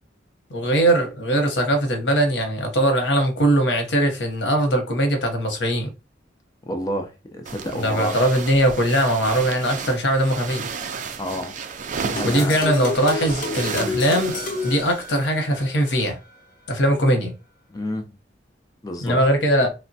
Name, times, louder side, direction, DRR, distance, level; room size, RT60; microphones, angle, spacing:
voice 1, 0.5-5.9 7.7-10.7 12.2-14.3 14.6-16.2 16.7-17.3 19.0-19.7, right 1 dB, 90° left, 0.8 m, -20 dB
voice 2, 6.6-8.2 11.2-11.6 12.0-12.6 13.7-14.0 17.7-18.1 18.8-19.2, equal, 20° left, 0.4 m, -30 dB
sound 1, 7.5-15.3, right 5 dB, 45° right, 0.4 m, -33 dB
sound 2, 12.2-15.6, left 2 dB, 50° left, 1.0 m, -30 dB
3.1 x 2.1 x 2.6 m
head